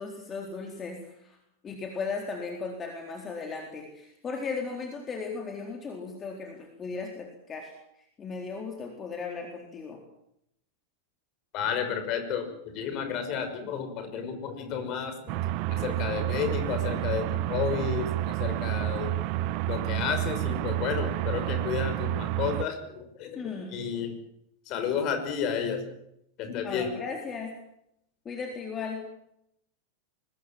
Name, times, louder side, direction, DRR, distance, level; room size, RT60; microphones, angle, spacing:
voice 1, 0.0-1.4 1.6-7.7 8.2-10.0 23.4-23.8 26.6-27.6 28.2-29.0, left 4 dB, 20° left, 2 dB, 4.0 m, -36 dB
voice 2, 11.5-12.5 12.7-15.3 15.7-19.1 19.7-23.4 23.7-24.1 24.7-25.9 26.4-26.9, left 7 dB, 40° left, 7 dB, 5.8 m, -31 dB
sound 1, 15.3-22.6, right 14 dB, 45° right, 1.0 m, -29 dB
24.0 x 20.5 x 7.7 m, 0.78 s
figure-of-eight pair, 90°, 0 cm